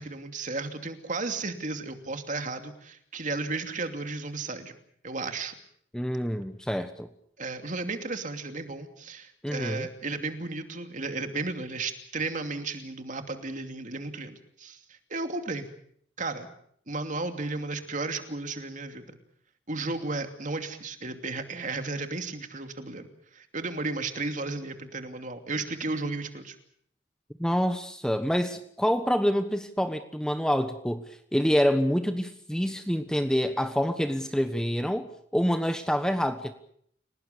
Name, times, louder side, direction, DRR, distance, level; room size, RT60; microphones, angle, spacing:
voice 1, 0.0-4.7 5.0-5.5 7.4-15.7 16.2-16.5 16.9-19.2 19.7-26.6, right 3 dB, 40° right, 7 dB, 2.8 m, -34 dB
voice 2, 5.9-7.1 9.4-9.9 27.4-35.1 35.3-36.5, equal, 5° left, 8 dB, 1.2 m, -27 dB
30.0 x 18.5 x 6.9 m, 0.66 s
head